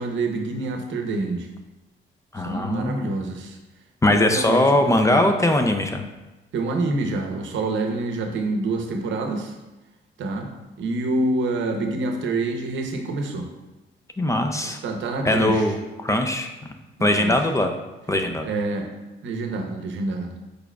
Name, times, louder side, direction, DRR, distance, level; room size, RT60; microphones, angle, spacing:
voice 1, 0.0-1.5 2.4-3.6 4.1-5.4 6.5-9.5 10.2-10.5 10.8-13.5 14.6-15.7 17.0-17.3 18.4-18.9 19.2-20.3, right 2 dB, 70° right, 4 dB, 0.7 m, -27 dB
voice 2, 2.3-3.1 4.0-6.1 14.2-14.8 15.2-16.5 17.0-17.7 18.1-18.5, left 1 dB, 15° left, 5 dB, 0.4 m, -21 dB
4.7 x 4.7 x 2.3 m, 1.1 s
cardioid pair, 90°, 20 cm